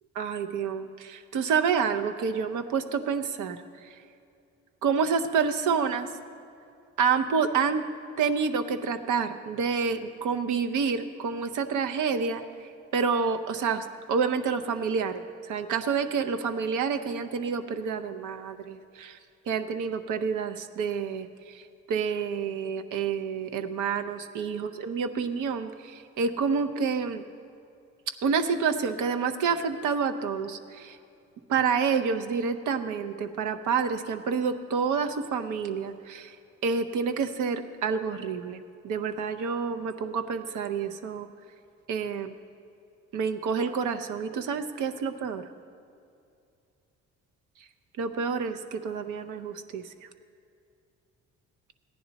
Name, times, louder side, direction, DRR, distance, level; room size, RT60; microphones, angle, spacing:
voice 1, 0.1-4.0 4.8-6.1 7.0-7.9 8.2-12.4 12.9-19.2 19.5-27.2 28.2-31.0 31.5-36.4 36.6-41.3 41.9-42.3 43.1-45.4 48.0-49.9, right 6 dB, 80° right, 8 dB, 0.7 m, -28 dB
15.0 x 10.0 x 4.0 m, 2.5 s
cardioid pair, 90°, 30 cm